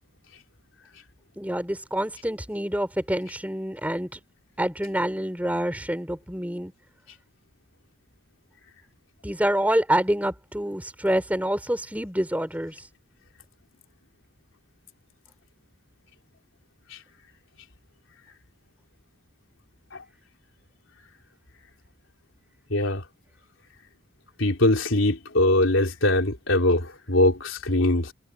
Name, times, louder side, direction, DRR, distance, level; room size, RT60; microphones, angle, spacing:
voice 1, 1.4-4.2 4.6-6.7 9.2-12.8, right 1 dB, 10° right, 3.3 m, -27 dB
voice 2, 22.7-23.0 24.4-28.1, left 1 dB, 80° left, 3.4 m, -22 dB
head